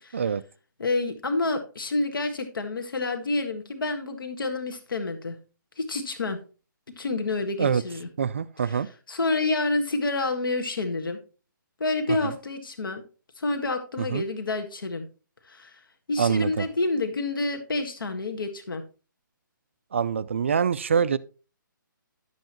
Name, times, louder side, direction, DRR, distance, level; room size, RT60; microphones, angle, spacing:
voice 1, 0.8-5.4 5.8-6.4 7.0-8.1 8.6-11.2 11.8-13.0 13.4-15.1 15.4-15.8 16.1-18.8, left 2 dB, 85° left, 1.6 m, -28 dB
voice 2, 8.2-8.9 12.1-12.3 14.0-14.2 16.2-16.6 19.9-21.2, right 7 dB, 35° right, 0.3 m, -25 dB
11.5 x 7.8 x 3.0 m
hypercardioid pair, 170°, 11 cm